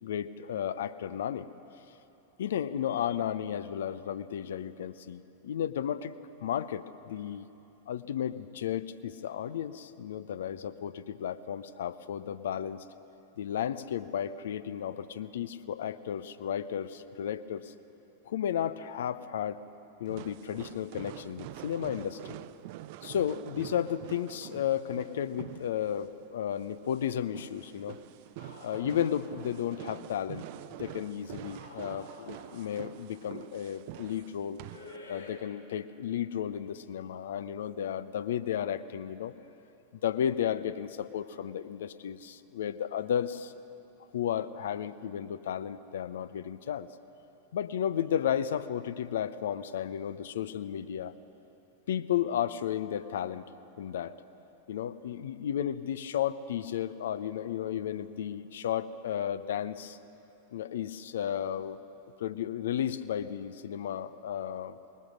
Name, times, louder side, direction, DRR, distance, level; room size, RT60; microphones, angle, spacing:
voice 1, 0.0-1.5 2.4-6.1 6.4-7.4 7.9-12.8 13.4-17.7 18.2-19.6 20.0-22.4 23.0-28.0 28.6-30.5 30.8-34.6 35.1-39.3 39.9-43.5 44.1-46.9 47.5-51.1 51.9-53.4 53.8-54.1 54.7-60.0 60.5-61.8 62.2-64.8, left 9 dB, 60° left, 14 dB, 0.6 m, -33 dB
sound 1, 20.1-35.0, right 14 dB, 50° right, 0.4 m, -46 dB
sound 2, 28.4-30.0 31.3-33.1 34.6-35.3, left 2 dB, 80° left, 2.9 m, -51 dB
21.0 x 20.0 x 6.4 m, 3.0 s
figure-of-eight pair, 90°, 0 cm